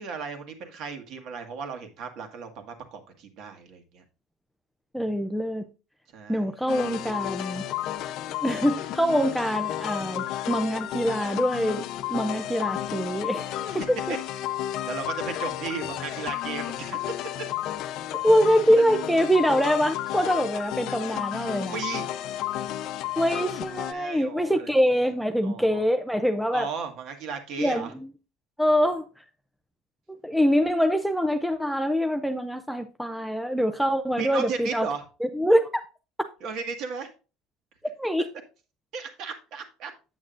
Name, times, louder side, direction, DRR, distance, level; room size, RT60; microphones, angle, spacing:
voice 1, 0.0-4.0 6.1-6.8 13.7-13.8 14.1-14.2 14.9-17.0 18.8-18.9 21.6-22.1 23.9-24.7 25.4-25.8 26.5-27.9 34.2-35.0 36.4-37.1 38.9-39.9, right 5 dB, 45° right, 1.8 m, -35 dB
voice 2, 4.9-5.7 6.3-7.6 8.4-11.8 12.1-14.0 18.2-21.8 23.2-26.7 27.6-27.9 28.6-29.1 30.2-34.9 35.3-35.7 38.0-38.3, equal, ahead, 0.4 m, -24 dB
sound 1, 6.7-23.9, left 13 dB, 45° left, 0.6 m, -32 dB
8.6 x 8.5 x 2.5 m
cardioid pair, 170°, 0 cm